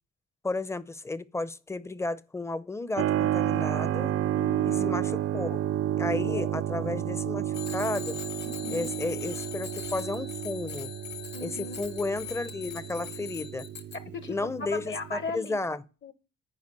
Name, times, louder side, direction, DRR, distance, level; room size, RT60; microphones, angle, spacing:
voice 1, 0.4-4.1 4.8-5.6 6.0-8.2 8.7-10.9 11.4-11.5 11.8-13.7 14.3-15.8, left 2 dB, 10° left, 0.5 m, -33 dB
Keyboard (musical), 3.0-15.4, right 12 dB, 50° right, 0.4 m, -31 dB
voice 2, 4.3-4.9 6.2-6.6 8.4-8.9 11.3-11.8 13.9-16.1, left 4 dB, 40° left, 0.8 m, -38 dB
Bicycle bell, 7.5-14.0, left 9 dB, 65° left, 1.8 m, -41 dB
9.8 x 4.8 x 5.4 m
cardioid pair, 90°, 30 cm